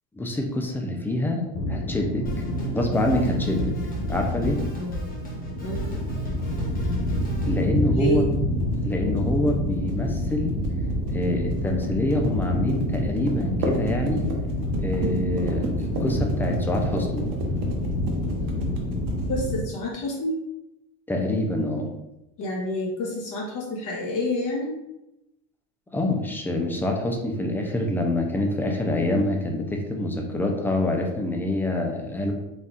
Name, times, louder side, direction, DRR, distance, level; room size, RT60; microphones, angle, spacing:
voice 1, 0.1-1.4 1.7-2.2 2.7-3.7 4.1-4.6 7.4-8.2 8.8-10.5 11.1-14.2 14.8-17.3 21.1-21.9 25.9-32.3, left 1 dB, 5° left, 1 dB, 0.3 m, -26 dB
sound 1, 1.5-19.6, left 1 dB, 80° left, 0.9 m, -27 dB
Drum kit, 2.3-7.7, left 1 dB, 20° left, 1.0 m, -35 dB
voice 2, 4.7-6.0 7.9-8.3 19.3-20.5 22.4-24.7, left 1 dB, 50° left, -3 dB, 1.1 m, -29 dB
sound 2, 5.8-19.5, right 2 dB, 60° right, 1.0 m, -35 dB
4.1 x 2.3 x 3.6 m, 0.91 s
cardioid pair, 135°, 40 cm